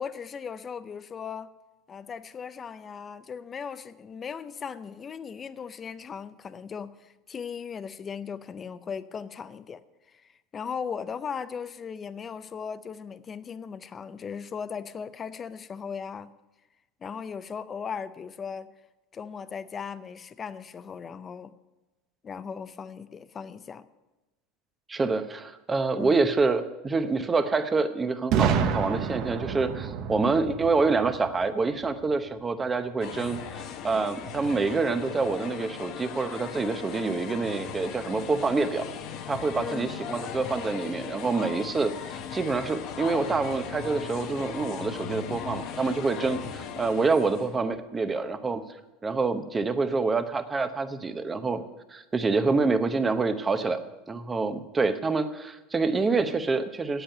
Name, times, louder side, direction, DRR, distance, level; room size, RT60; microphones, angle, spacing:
voice 1, 0.0-1.5 1.9-9.8 10.2-16.3 17.0-18.7 19.1-21.5 22.2-23.8 26.0-26.1 39.5-39.9, left 6 dB, 25° left, 0.5 m, -37 dB
voice 2, 24.9-38.9 39.3-48.6 49.0-51.6 51.9-53.8 54.1-57.0, right 4 dB, 20° right, 0.8 m, -27 dB
Boom, 28.3-32.1, right 7 dB, 50° right, 1.0 m, -29 dB
sound 1, 33.0-47.6, left 8 dB, 55° left, 0.9 m, -38 dB
sound 2, 41.5-47.0, left 6 dB, 80° left, 0.9 m, -46 dB
8.6 x 8.0 x 8.8 m
supercardioid pair, 120°, 0 cm